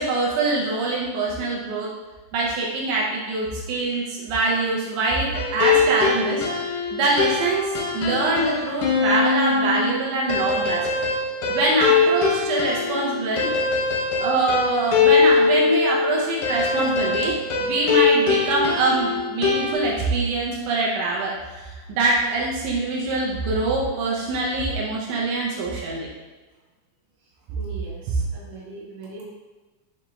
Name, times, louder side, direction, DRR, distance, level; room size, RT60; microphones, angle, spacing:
voice 1, 0.0-1.9 2.3-6.5 6.9-7.6 7.9-10.8 11.5-13.5 14.2-26.1, right 2 dB, 80° right, -3 dB, 2.1 m, -24 dB
sound 1, 5.3-19.8, left 4 dB, 85° left, 2.1 m, -22 dB
voice 2, 27.6-29.2, right 1 dB, 65° right, -5 dB, 1.8 m, -40 dB
5.9 x 2.3 x 3.0 m, 1.2 s
omnidirectional pair, 3.4 m